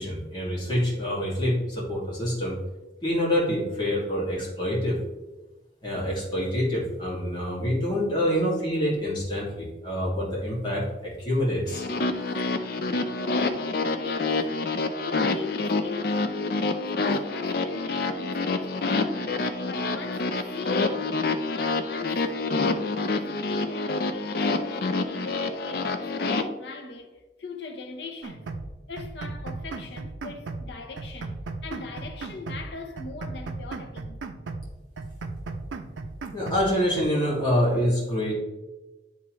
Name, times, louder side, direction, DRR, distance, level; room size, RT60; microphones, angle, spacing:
voice 1, 0.0-2.5 3.0-5.0 5.8-11.8 36.3-38.3, equal, 25° left, 2.1 m, -26 dB
sound 1, 11.7-26.4, left 3 dB, 55° left, 0.5 m, -27 dB
voice 2, 13.9-14.5 15.0-19.3 19.6-22.6 23.0-28.6 28.9-31.4 31.6-34.2, left 3 dB, 75° left, 0.8 m, -41 dB
sound 2, 28.2-28.7 29.0-30.7 31.0-32.7 33.0-34.7 35.0-36.7 37.0-37.1, right 3 dB, 90° right, 0.5 m, -36 dB
10.5 x 3.6 x 3.1 m
head